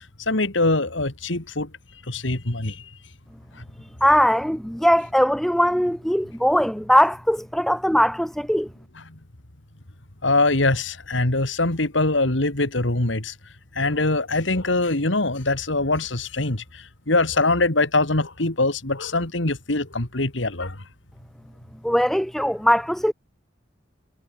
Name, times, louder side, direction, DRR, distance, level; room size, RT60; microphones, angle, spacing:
voice 1, 0.0-1.7 2.1-2.9 3.5-3.6 9.1-9.2 10.2-13.3 13.7-20.8, left 2 dB, 75° left, 2.7 m, -23 dB
voice 2, 4.0-8.7 21.8-23.1, equal, ahead, 1.3 m, -20 dB
head